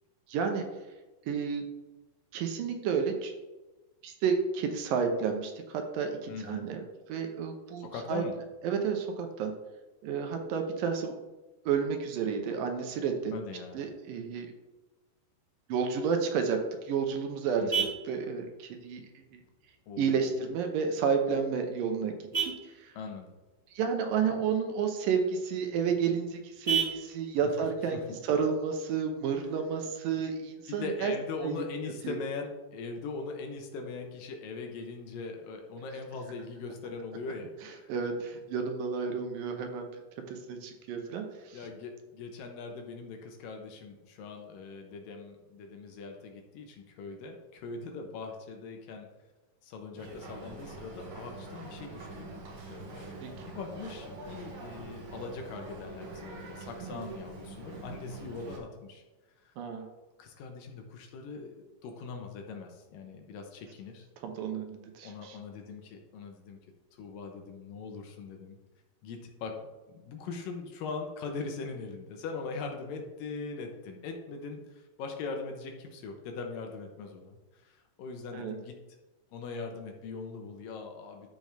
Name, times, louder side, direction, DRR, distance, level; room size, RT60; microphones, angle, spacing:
voice 1, 0.3-0.7 1.3-1.6 2.3-3.3 4.0-6.8 7.1-8.2 8.6-9.5 10.0-11.1 11.7-13.3 13.7-14.5 15.7-16.6 16.9-17.6 18.1-19.0 19.3-19.4 20.0-22.1 22.4-22.5 22.8-22.9 23.8-28.0 28.3-31.1 31.4-31.6 32.0-32.1 37.9-39.9 40.3-41.6 53.2-53.3 56.8-57.0 59.6-59.9 64.2-65.4 78.3-78.5, right 6 dB, 75° right, 5 dB, 2.4 m, -31 dB
voice 2, 6.3-6.6 7.8-8.4 13.3-13.8 17.6-17.9 19.9-20.3 23.0-23.3 27.4-27.5 27.9-28.2 30.7-37.9 41.5-49.1 49.6-52.4 52.7-53.1 53.5-59.0 59.4-59.5 60.2-64.1 65.0-66.6 66.9-68.6 69.0-69.6 69.9-78.8 79.3-81.3, left 4 dB, 75° left, 3 dB, 2.5 m, -41 dB
Vehicle horn car horn honking, 16.4-29.4, right 6 dB, 15° right, 1.9 m, -39 dB
Boat Water vehicle, 50.0-58.6, right 2 dB, 55° right, 1.6 m, -44 dB
13.0 x 5.2 x 3.4 m, 1.1 s
omnidirectional pair, 4.3 m